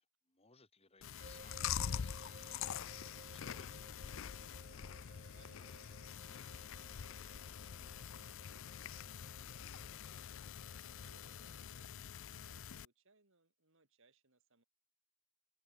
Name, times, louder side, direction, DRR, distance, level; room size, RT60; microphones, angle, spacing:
voice 1, 0.0-3.9 11.2-11.5, left 4 dB, 25° left, 5.6 m, -67 dB
Chewing mastication, 1.0-12.8, left 8 dB, 60° left, 0.5 m, -45 dB
sound 1, 1.2-11.7, right 3 dB, 35° right, 1.5 m, -61 dB
voice 2, 5.0-10.7 11.0-14.6, right 3 dB, 60° right, 2.9 m, -72 dB
head